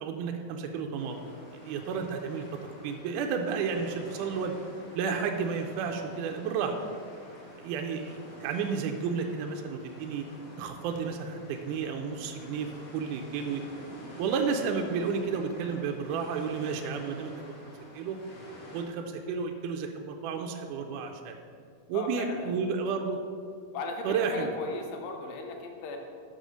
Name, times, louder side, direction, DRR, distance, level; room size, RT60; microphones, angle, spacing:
voice 1, 0.0-1.2 1.5-4.5 4.9-6.8 7.6-10.3 10.6-13.6 14.2-17.3 17.9-18.2 18.7-21.4 21.9-23.2 24.0-24.6, right 5 dB, 80° right, 3 dB, 1.9 m, -32 dB
sound 1, 1.0-18.8, equal, 45° left, 2.2 m, -49 dB
voice 2, 21.9-22.6 23.7-26.0, left 2 dB, 85° left, 3 dB, 2.7 m, -37 dB
6.7 x 5.5 x 6.3 m, 2.2 s
omnidirectional pair, 4.1 m